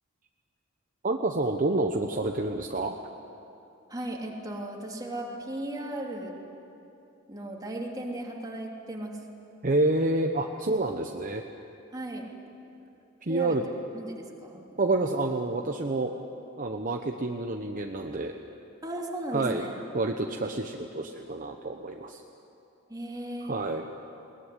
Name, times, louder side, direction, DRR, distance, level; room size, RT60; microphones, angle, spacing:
voice 1, 1.0-3.0 9.6-11.4 13.2-13.7 14.8-16.1 16.6-18.3 19.3-19.7 19.9-22.2 23.4-23.8, right 2 dB, 40° right, 3 dB, 1.0 m, -28 dB
voice 2, 3.9-6.3 7.3-9.2 11.9-12.3 13.3-13.6 13.9-14.6 18.8-19.8 22.9-23.5, right 1 dB, 20° right, -1 dB, 3.0 m, -36 dB
22.0 x 19.0 x 9.9 m, 2.8 s
head